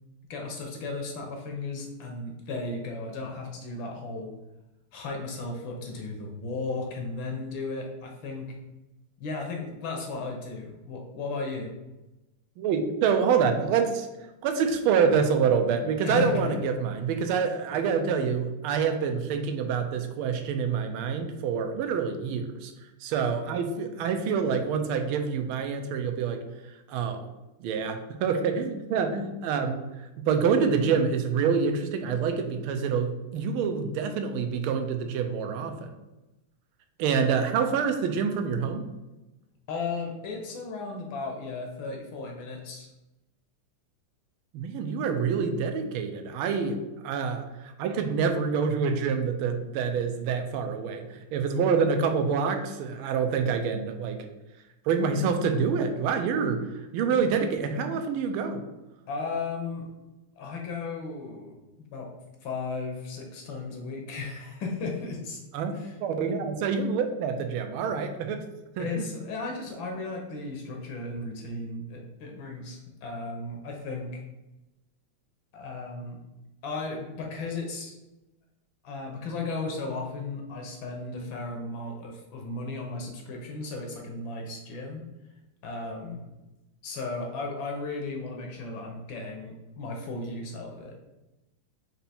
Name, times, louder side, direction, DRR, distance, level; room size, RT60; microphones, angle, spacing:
voice 1, 0.3-4.3 4.9-8.5 9.2-11.7 16.0-16.6 39.7-42.9 59.1-59.9 60.4-61.6 61.9-62.1 62.4-65.4 65.7-66.0 68.8-74.2 75.5-76.2 76.6-78.0 78.8-85.0 85.6-86.2 86.8-90.9, left 3 dB, 70° left, 1 dB, 1.4 m, -35 dB
voice 2, 12.6-14.1 14.4-22.7 23.0-26.4 26.9-27.2 27.6-29.8 30.3-35.9 37.0-38.9 44.5-46.8 47.0-54.2 54.9-58.6 65.5-65.7 66.0-68.5 68.8-69.1, right 6 dB, 80° right, 6 dB, 1.4 m, -26 dB
4.5 x 2.8 x 4.1 m, 1.0 s
omnidirectional pair, 2.4 m